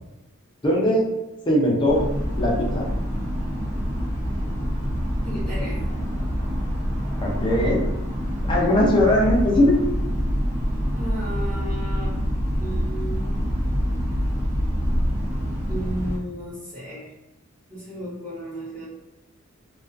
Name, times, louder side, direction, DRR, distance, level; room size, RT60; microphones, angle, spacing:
voice 1, 0.6-1.0 1.5-2.0 2.4-2.9 7.2-7.8 8.4-9.8, left 1 dB, 25° left, -3 dB, 0.5 m, -19 dB
sound 1, 1.9-16.2, equal, 90° right, 0.7 m, -26 dB
voice 2, 5.2-5.8 11.0-12.2 12.6-13.3 15.7-17.1 17.7-18.8, equal, 20° right, -13 dB, 0.9 m, -34 dB
2.3 x 2.3 x 2.4 m, 0.98 s
head